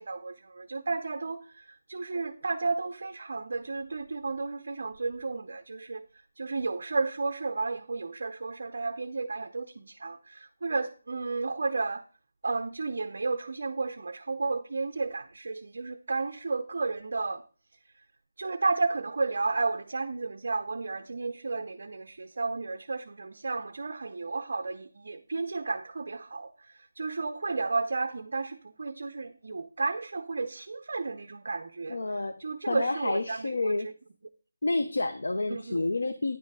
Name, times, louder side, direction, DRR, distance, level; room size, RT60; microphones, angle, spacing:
voice 1, 0.0-6.0 6.4-12.0 12.4-17.4 18.4-33.9 35.5-35.9, right 3 dB, 45° right, 0.5 m, -32 dB
voice 2, 31.9-32.4 32.7-33.9 34.6-36.4, left 2 dB, 75° left, 0.6 m, -29 dB
9.4 x 4.4 x 4.7 m
figure-of-eight pair, 180°, 0 cm